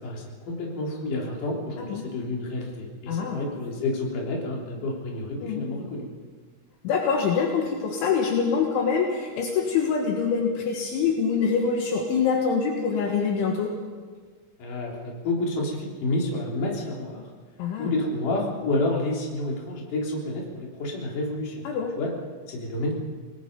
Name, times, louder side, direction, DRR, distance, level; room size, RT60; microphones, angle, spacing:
voice 1, 0.0-6.1 14.6-17.2 17.8-21.6 22.0-22.1 22.5-22.9, left 2 dB, 45° left, -2 dB, 4.6 m, -29 dB
voice 2, 3.1-3.4 5.4-5.7 6.8-13.7 17.6-17.9 21.7-22.0, left 6 dB, 70° left, 1 dB, 3.8 m, -25 dB
29.5 x 19.5 x 5.3 m, 1.5 s
omnidirectional pair, 5.9 m